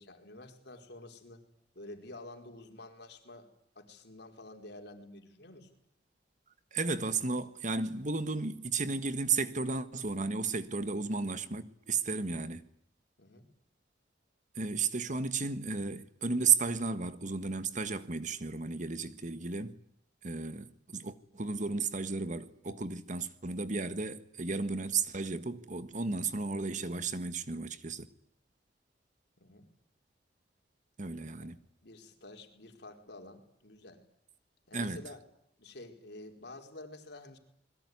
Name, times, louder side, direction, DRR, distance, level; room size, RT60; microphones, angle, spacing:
voice 1, 0.0-1.4 1.7-5.7 13.2-13.5 29.4-29.7 31.4-31.5 31.8-34.0 34.7-35.2 35.6-37.4, left 2 dB, 65° left, 4.7 m, -50 dB
voice 2, 6.7-12.6 14.5-19.8 20.2-28.1 31.0-31.6 34.7-35.0, right 4 dB, 45° right, 1.5 m, -33 dB
28.0 x 21.5 x 9.6 m
head